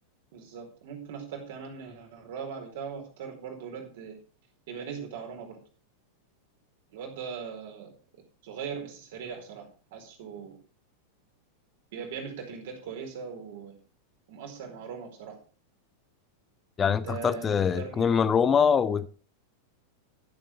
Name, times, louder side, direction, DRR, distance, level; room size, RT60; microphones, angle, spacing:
voice 1, 0.3-4.2 4.7-5.6 6.9-7.9 8.4-10.6 11.9-13.8 14.3-15.4 16.9-18.1, right 6 dB, 55° right, 4.5 m, -40 dB
voice 2, 16.8-19.1, left 7 dB, 20° left, 0.7 m, -24 dB
13.5 x 7.9 x 4.9 m
figure-of-eight pair, 90°, 0 cm